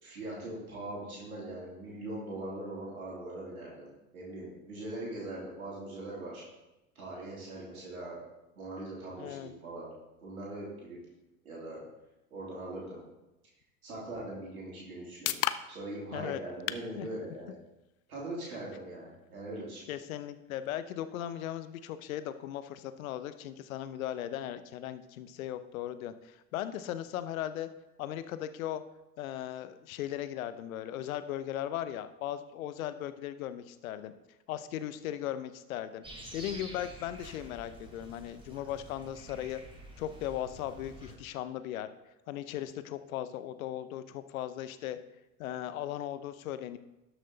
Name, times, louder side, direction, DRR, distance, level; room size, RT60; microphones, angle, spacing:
voice 1, 0.0-6.4 6.9-8.2 8.6-9.9 10.2-11.0 11.4-11.8 12.3-13.0 13.8-15.4 15.7-17.5 18.1-19.9, right 1 dB, 85° right, -6 dB, 3.2 m, -41 dB
voice 2, 9.2-9.5 16.1-16.4 17.0-17.1 19.9-27.7 28.0-28.8 29.2-34.1 34.5-36.0 36.3-39.6 40.0-41.9 42.3-45.0 45.4-46.8, left 11 dB, 75° left, 12 dB, 0.8 m, -37 dB
sound 1, 14.5-28.4, left 13 dB, 35° left, 0.5 m, -44 dB
sound 2, 36.0-41.1, right 1 dB, 10° right, 3.5 m, -49 dB
12.5 x 6.3 x 3.9 m, 0.97 s
hypercardioid pair, 80°, 42 cm